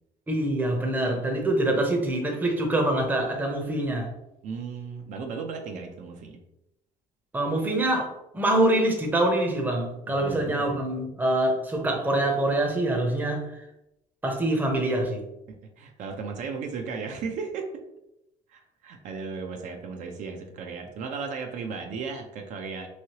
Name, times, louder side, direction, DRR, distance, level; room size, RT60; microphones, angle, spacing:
voice 1, 0.3-4.1 7.3-13.5 14.2-15.2, right 1 dB, 10° right, 1 dB, 0.6 m, -25 dB
voice 2, 4.4-6.4 10.1-10.8 15.8-17.8 18.5-22.9, right 5 dB, 60° right, 3 dB, 0.5 m, -35 dB
3.1 x 2.7 x 2.8 m, 0.87 s
cardioid pair, 125°, 14 cm